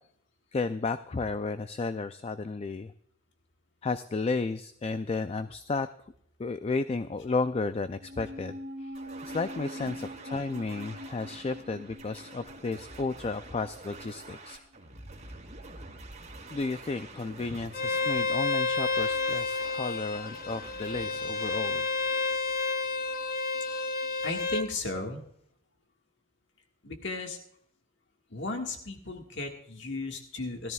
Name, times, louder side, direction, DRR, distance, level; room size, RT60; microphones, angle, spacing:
voice 1, 0.5-2.9 3.8-5.9 6.4-14.6 16.5-21.9, left 3 dB, 30° left, 11 dB, 0.4 m, -33 dB
sound 1, 8.0-14.5 14.8-14.9, equal, 70° right, 2.5 m, -44 dB
sound 2, 8.9-22.8, right 3 dB, 35° right, 2.8 m, -48 dB
Bowed string instrument, 17.7-24.7, left 3 dB, 50° left, 0.8 m, -30 dB
voice 2, 24.2-25.2 26.8-27.4 28.3-30.7, left 3 dB, 65° left, 3 dB, 1.6 m, -35 dB
17.5 x 13.5 x 2.3 m, 0.68 s
head